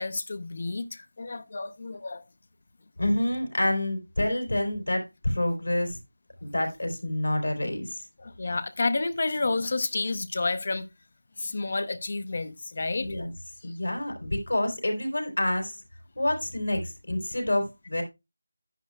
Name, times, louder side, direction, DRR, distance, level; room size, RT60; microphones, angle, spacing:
voice 1, 0.0-2.2 8.2-10.8 11.4-13.1, left 3 dB, 40° left, 0.6 m, -30 dB
voice 2, 3.0-6.0 6.4-8.0 13.0-13.3 13.6-15.8 16.2-18.0, left 1 dB, 85° left, 3.6 m, -28 dB
10.5 x 10.5 x 2.3 m
figure-of-eight pair, 175°, 0 cm